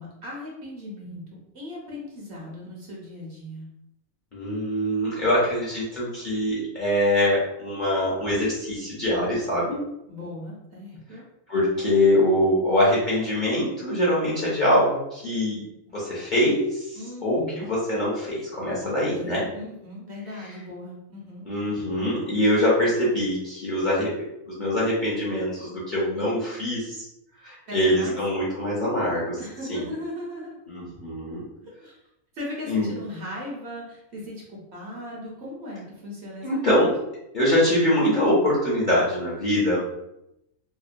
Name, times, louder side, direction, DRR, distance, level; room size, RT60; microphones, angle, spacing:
voice 1, 0.0-3.7 10.1-11.2 16.9-17.7 18.8-21.4 27.7-28.2 29.4-30.6 31.6-32.0 32.3-36.9, left 1 dB, 60° right, -4 dB, 0.9 m, -38 dB
voice 2, 4.3-9.8 11.5-15.6 15.9-19.5 21.4-24.1 24.5-27.0 27.4-29.4 29.7-29.8 30.7-31.4 32.7-32.9 36.4-36.9 37.3-39.8, left 1 dB, 45° left, -8 dB, 0.7 m, -23 dB
2.9 x 2.0 x 2.5 m, 0.86 s
omnidirectional pair, 1.4 m